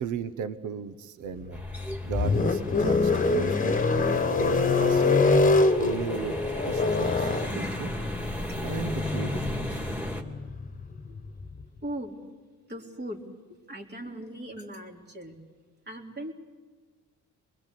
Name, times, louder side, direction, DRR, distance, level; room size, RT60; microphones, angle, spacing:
voice 1, 0.0-5.3 5.8-7.9 8.6-9.9, right 7 dB, 75° right, 12 dB, 1.1 m, -36 dB
sound 1, 1.4-11.6, left 3 dB, 25° left, 1.4 m, -25 dB
sound 2, 1.5-10.2, equal, 5° right, 2.8 m, -36 dB
voice 2, 11.8-12.2 12.7-13.3 13.7-15.4 15.9-16.3, right 1 dB, 35° right, 1 dB, 3.4 m, -39 dB
25.5 x 21.0 x 8.3 m, 1.4 s
cardioid pair, 90°, 30 cm